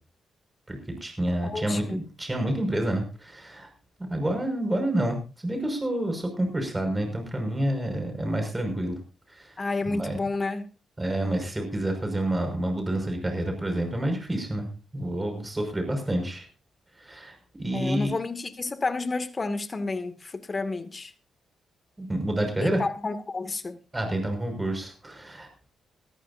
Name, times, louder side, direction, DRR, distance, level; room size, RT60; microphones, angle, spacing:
voice 1, 0.7-3.7 4.1-9.0 9.3-9.5 9.9-10.2 11.0-14.7 14.9-16.5 17.0-18.1 22.0-22.8 23.9-25.7, right 1 dB, 20° right, 5.8 m, -28 dB
voice 2, 1.4-2.0 9.6-10.7 17.7-21.1 22.6-23.8, left 3 dB, 35° left, 2.3 m, -30 dB
20.0 x 13.5 x 2.7 m
supercardioid pair, 55°, 0 cm